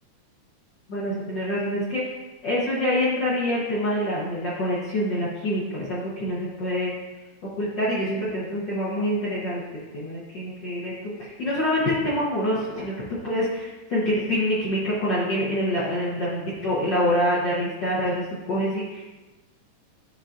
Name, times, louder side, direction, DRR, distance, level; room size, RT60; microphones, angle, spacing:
voice 1, 0.9-2.2 2.4-6.9 7.4-19.0, equal, 60° left, -8 dB, 1.1 m, -26 dB
11.0 x 3.9 x 2.5 m, 1.2 s
omnidirectional pair, 3.5 m